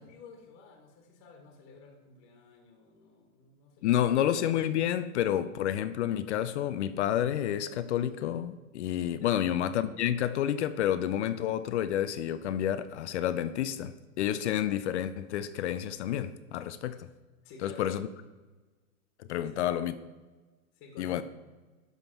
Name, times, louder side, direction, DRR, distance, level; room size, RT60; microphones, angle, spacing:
voice 1, 0.0-4.2 9.2-9.4 17.4-17.9 19.4-19.8 20.7-21.2, left 3 dB, 40° left, 1.6 m, -52 dB
voice 2, 3.8-17.1 17.6-18.1 19.2-20.0 21.0-21.2, left 11 dB, 55° left, 0.5 m, -29 dB
11.5 x 3.8 x 5.9 m
hypercardioid pair, 130°, 41 cm